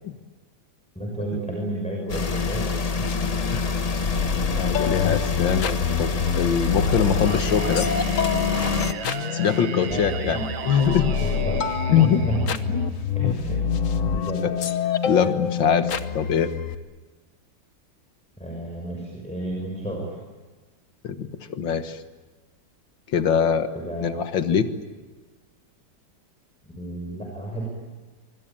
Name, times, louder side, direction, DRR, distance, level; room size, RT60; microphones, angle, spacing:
voice 1, 0.9-2.7 3.0-3.1 9.9-10.5 11.1-12.5 13.1-13.6 14.0-14.5 18.4-20.2 23.7-24.3 26.7-27.7, right 2 dB, 5° left, -1 dB, 6.0 m, -31 dB
sound 1, 2.1-8.9, left 4 dB, 30° left, 0.7 m, -26 dB
sound 2, 3.0-16.7, left 7 dB, 50° left, 1.3 m, -27 dB
voice 2, 4.6-6.1 6.4-7.9 9.3-11.1 11.9-12.2 12.7-12.9 13.2-13.3 14.4-14.5 15.1-16.5 21.0-22.0 23.1-23.7 24.0-24.7, left 8 dB, 80° left, 9 dB, 2.1 m, -23 dB
Singing, 7.3-13.2, right 8 dB, 85° right, 1.8 m, -36 dB
25.0 x 25.0 x 8.8 m, 1.3 s
omnidirectional pair, 2.0 m